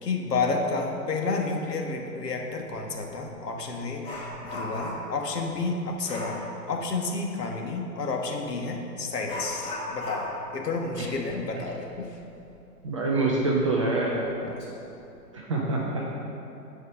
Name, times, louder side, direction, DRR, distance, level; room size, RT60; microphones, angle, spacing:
voice 1, 0.0-6.4 6.7-10.3 10.5-12.1 14.4-14.6, left 3 dB, 75° left, 1 dB, 1.4 m, -30 dB
Dog, 2.7-2.8 3.3-5.2 6.0-6.4 8.4-8.5 9.2-12.5 12.9-13.0 13.5-13.6 14.2-14.7 15.0-15.3, left 1 dB, 10° left, 1.4 m, -37 dB
voice 2, 12.8-14.2 15.3-16.1, right 2 dB, 20° right, -3 dB, 0.5 m, -25 dB
10.0 x 4.6 x 6.3 m, 2.8 s
figure-of-eight pair, 125°, 49 cm